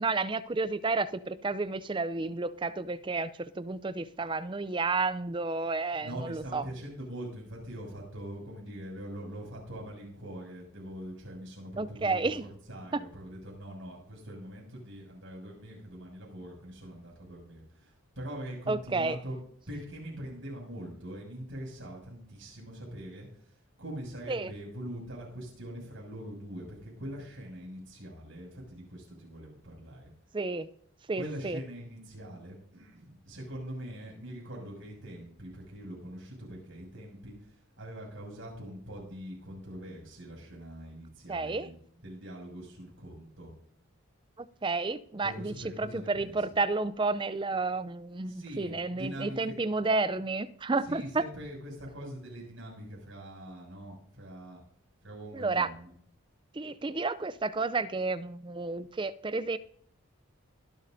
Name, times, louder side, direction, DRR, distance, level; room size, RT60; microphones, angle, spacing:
voice 1, 0.0-6.6 11.8-12.5 12.9-13.0 18.7-19.2 24.3-24.5 30.3-30.7 31.1-31.6 41.3-41.7 44.4-51.2 55.3-55.7 56.5-59.6, right 3 dB, 20° right, 0.4 m, -31 dB
voice 2, 6.0-19.4 19.7-23.3 23.8-30.1 31.1-43.5 45.2-46.4 48.3-49.6 50.8-54.6 55.0-55.9, equal, 60° right, 6.6 m, -43 dB
24.5 x 8.5 x 2.7 m
head